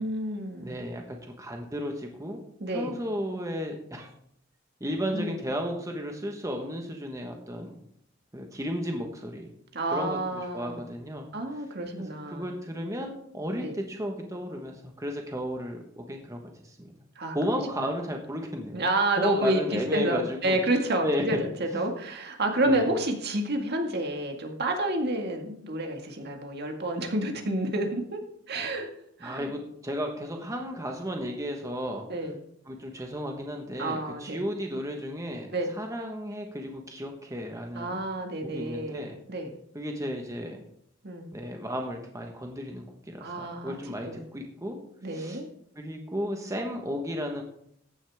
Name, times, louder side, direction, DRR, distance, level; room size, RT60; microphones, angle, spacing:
voice 1, 0.0-0.7 2.6-3.0 5.1-5.3 9.7-10.8 11.3-12.5 13.6-13.7 17.2-17.4 17.8-17.9 18.7-28.2 28.5-28.9 29.2-29.5 32.1-32.4 33.8-34.4 35.5-35.7 37.7-39.5 41.0-41.4 43.2-44.3 45.0-45.5, right 1 dB, 55° right, 3 dB, 2.0 m, -29 dB
voice 2, 0.6-2.4 2.7-4.1 4.8-7.7 8.3-9.5 9.9-11.3 12.3-16.9 17.3-18.8 19.2-20.6 21.0-21.3 21.7-21.8 22.6-22.9 29.2-32.1 32.7-38.0 38.4-39.2 39.7-40.6 41.3-44.8 45.1-45.4 45.7-47.4, equal, 15° right, 2 dB, 1.4 m, -34 dB
15.0 x 10.0 x 3.6 m, 0.68 s
head